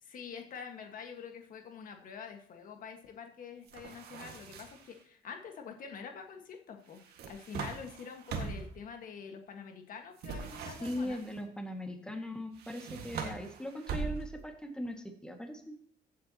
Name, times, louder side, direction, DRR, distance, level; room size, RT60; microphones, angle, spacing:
voice 1, 0.0-11.2, left 6 dB, 55° left, 4 dB, 1.6 m, -46 dB
sound 1, 3.7-4.9 6.9-8.8 10.2-11.4 12.5-14.5, right 5 dB, 70° right, 1.8 m, -41 dB
voice 2, 10.8-15.7, left 1 dB, 5° left, 3 dB, 1.9 m, -39 dB
15.0 x 7.9 x 2.9 m, 0.63 s
cardioid pair, 110°, 17 cm